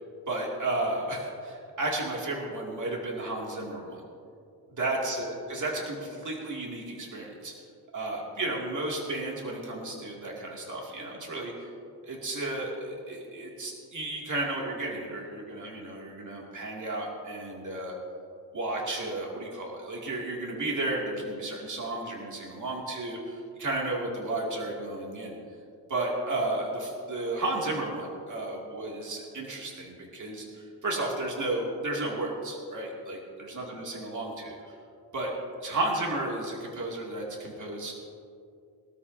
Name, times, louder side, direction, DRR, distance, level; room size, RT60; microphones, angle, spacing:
voice 1, 0.3-4.0 4.8-7.5 7.9-11.7 12.0-17.9 18.5-25.4 25.9-34.6 35.1-35.3 35.6-37.9, right 2 dB, 45° right, -2 dB, 2.6 m, -33 dB
21.5 x 13.0 x 2.8 m, 2.5 s
wide cardioid pair, 115°, 40 cm